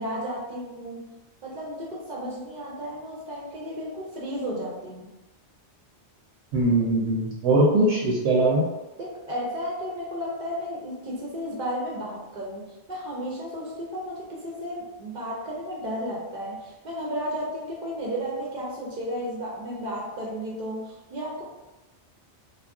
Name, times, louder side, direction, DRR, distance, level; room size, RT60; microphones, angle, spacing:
voice 1, 0.0-5.1 9.0-21.4, equal, 55° right, -4 dB, 0.6 m, -33 dB
voice 2, 6.5-8.6, right 2 dB, 80° right, -2 dB, 0.9 m, -21 dB
2.4 x 2.0 x 3.4 m, 1.1 s
omnidirectional pair, 1.2 m